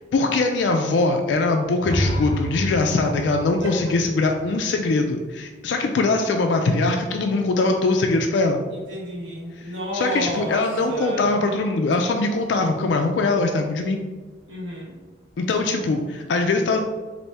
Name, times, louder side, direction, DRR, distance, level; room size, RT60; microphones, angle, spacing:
voice 1, 0.1-8.6 9.6-14.0 15.4-16.8, left 3 dB, 75° left, 4 dB, 0.3 m, -22 dB
sound 1, 1.8-5.7, equal, 25° left, 0.5 m, -29 dB
voice 2, 8.7-11.4 14.5-15.0, equal, 80° right, -3 dB, 1.2 m, -31 dB
4.1 x 2.6 x 3.3 m, 1.3 s
head